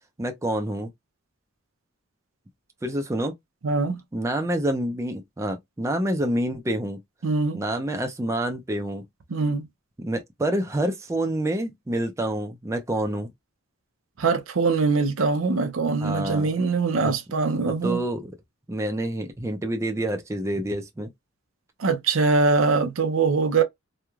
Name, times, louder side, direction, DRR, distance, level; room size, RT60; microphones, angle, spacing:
voice 1, 0.2-0.9 2.8-3.3 4.1-7.0 7.5-9.0 10.0-13.3 16.0-16.5 17.0-17.1 17.7-18.3 18.7-21.1, right 1 dB, 15° right, 0.4 m, -27 dB
voice 2, 3.6-4.0 7.2-7.6 9.3-9.7 14.2-18.0 21.8-23.6, right 4 dB, 70° right, 0.6 m, -22 dB
3.0 x 2.2 x 2.3 m
head